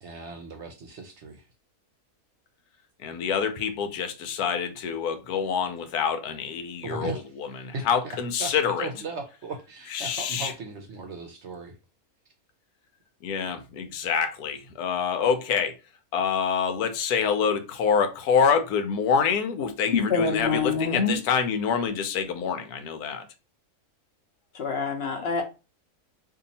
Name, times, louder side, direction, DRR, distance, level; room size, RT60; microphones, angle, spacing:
voice 1, 0.0-1.5 6.8-7.4 7.7-11.8, right 3 dB, 60° right, 0.8 m, -37 dB
voice 2, 3.0-7.1 7.6-8.9 9.9-10.5 13.2-15.7 16.1-23.2, left 6 dB, 85° left, 1.2 m, -26 dB
voice 3, 19.9-21.2 24.5-25.4, left 5 dB, 50° left, 0.9 m, -26 dB
2.7 x 2.7 x 4.0 m
omnidirectional pair, 1.6 m